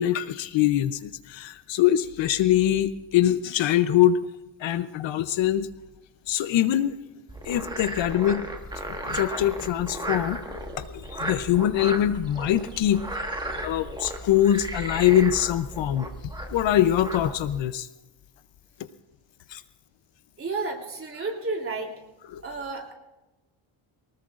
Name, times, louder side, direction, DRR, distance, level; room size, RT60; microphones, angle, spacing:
voice 1, 0.0-4.2 4.6-5.7 6.3-7.0 7.4-8.5 9.0-13.0 13.6-17.9 19.5-19.6 22.3-22.4, left 11 dB, 65° left, 12 dB, 0.8 m, -23 dB
Frog, 7.3-17.6, right 1 dB, 10° right, 1.6 m, -35 dB
voice 2, 20.4-21.9 22.4-22.9, right 3 dB, 25° right, 1 dB, 3.2 m, -31 dB
23.5 x 19.5 x 2.5 m, 1.0 s
cardioid pair, 150°, 49 cm